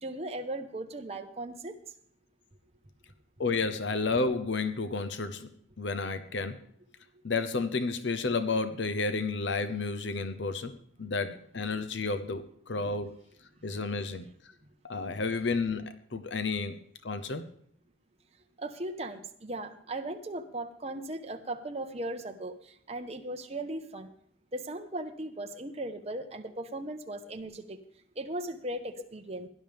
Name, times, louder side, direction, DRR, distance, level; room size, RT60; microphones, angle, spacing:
voice 1, 0.0-1.8 18.6-24.1 24.5-27.8 28.2-29.5, right 1 dB, 35° right, 5 dB, 1.1 m, -37 dB
voice 2, 3.4-5.5 5.8-6.6 7.2-13.1 13.6-14.5 14.8-16.8 17.0-17.4, left 3 dB, 65° left, 10 dB, 0.8 m, -31 dB
17.0 x 11.0 x 3.5 m, 0.65 s
head